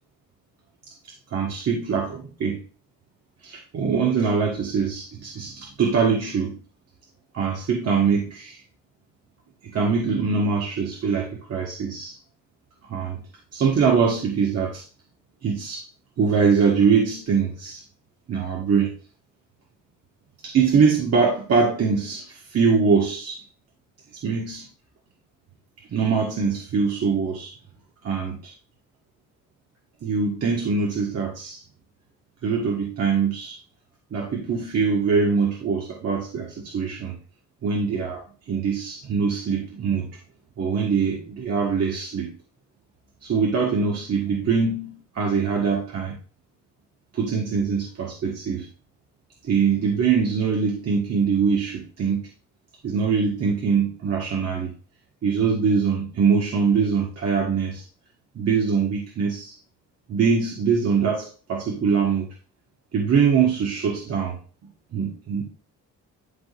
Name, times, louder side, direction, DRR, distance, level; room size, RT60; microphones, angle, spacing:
voice 1, 1.3-2.6 3.4-6.6 7.3-8.6 9.7-12.1 12.9-13.2 13.5-14.8 15.4-15.8 16.2-17.8 18.3-18.9 20.4-23.4 24.1-24.7 25.9-27.5 28.0-28.5 30.0-31.6 32.4-33.6 34.1-37.2 37.6-40.1 40.6-42.3 43.2-46.2 47.1-48.6 49.4-52.2 52.8-54.7 55.2-57.8 58.3-59.5 60.1-62.3 62.9-64.4 64.9-65.4, right 5 dB, 55° right, -2 dB, 1.6 m, -23 dB
11.5 x 3.8 x 2.5 m, 0.38 s
cardioid pair, 90°, 30 cm